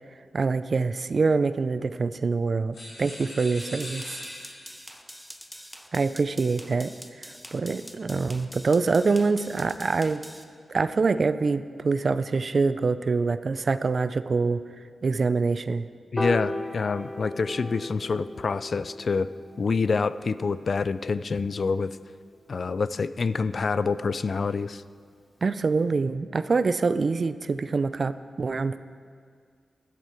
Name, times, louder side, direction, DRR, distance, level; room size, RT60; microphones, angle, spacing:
voice 1, 0.3-4.2 5.9-6.9 7.2-10.2 10.7-14.6 15.0-15.9 25.4-28.8, right 4 dB, 55° right, 13 dB, 0.4 m, -25 dB
sound 1, 2.7-4.9, left 1 dB, 85° left, 3.8 m, -40 dB
sound 2, 3.6-10.4, equal, ahead, 0.9 m, -45 dB
voice 2, 16.1-19.3 19.6-22.0 22.5-24.8, left 4 dB, 60° left, 15 dB, 0.4 m, -27 dB
Piano, 16.2-22.5, left 1 dB, 25° left, 1.2 m, -37 dB
12.5 x 12.0 x 4.4 m, 2.1 s
cardioid pair, 70°, 0 cm